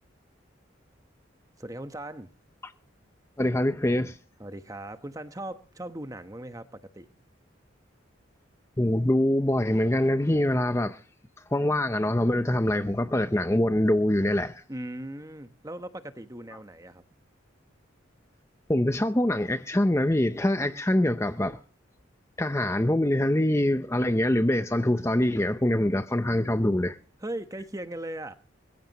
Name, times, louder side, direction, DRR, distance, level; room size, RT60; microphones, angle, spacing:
voice 1, 1.6-2.3 4.4-7.1 14.7-17.0 27.2-28.3, right 1 dB, 15° right, 1.0 m, -38 dB
voice 2, 3.4-4.2 8.8-11.0 11.5-14.6 18.7-21.6 22.4-27.0, left 1 dB, 15° left, 0.6 m, -24 dB
22.0 x 15.0 x 3.0 m
head